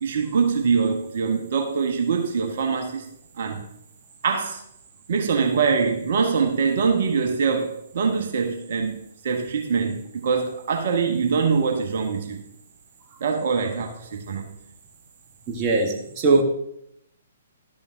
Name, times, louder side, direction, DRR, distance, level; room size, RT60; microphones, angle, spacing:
voice 1, 0.0-3.0 3.4-3.6 4.2-4.6 5.1-9.0 9.2-12.4 13.2-14.5, right 5 dB, 50° right, 3 dB, 1.0 m, -23 dB
voice 2, 15.5-16.4, right 3 dB, 30° right, 3 dB, 1.1 m, -20 dB
12.0 x 6.9 x 2.6 m, 0.77 s
figure-of-eight pair, 125°, 0 cm